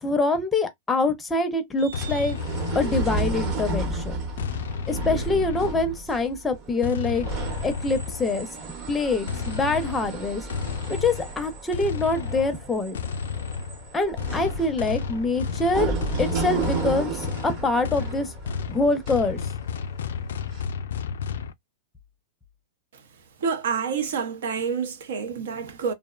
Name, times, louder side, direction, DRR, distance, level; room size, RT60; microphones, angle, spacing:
voice 1, 0.0-2.4 2.7-4.2 4.9-8.5 8.9-13.0 13.9-15.9 16.2-18.3 18.7-19.4, left 3 dB, 10° left, 0.5 m, -25 dB
sound 1, 1.8-19.9 20.5-20.6, right 3 dB, 35° right, 0.8 m, -33 dB
sound 2, 1.9-3.7 4.4-6.1 6.8-8.5 9.3-21.5, left 6 dB, 90° left, 0.3 m, -33 dB
voice 2, 23.4-25.9, right 6 dB, 80° right, 0.6 m, -28 dB
2.5 x 2.0 x 2.3 m
supercardioid pair, 145°, 0 cm